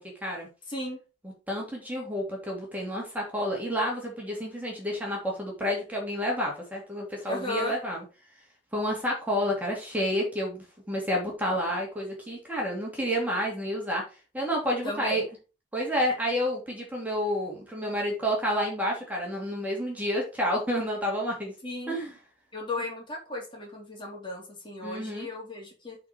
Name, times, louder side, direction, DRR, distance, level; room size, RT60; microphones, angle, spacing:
voice 1, 0.7-1.0 7.3-7.7 14.8-15.2 21.6-22.0 22.5-26.0, left 2 dB, 30° left, -2 dB, 3.2 m, -35 dB
voice 2, 1.2-8.0 8.7-14.0 14.3-15.2 15.7-21.5 21.9-22.1 24.8-25.3, equal, 10° right, -2 dB, 2.8 m, -30 dB
8.3 x 4.6 x 5.3 m, 0.32 s
head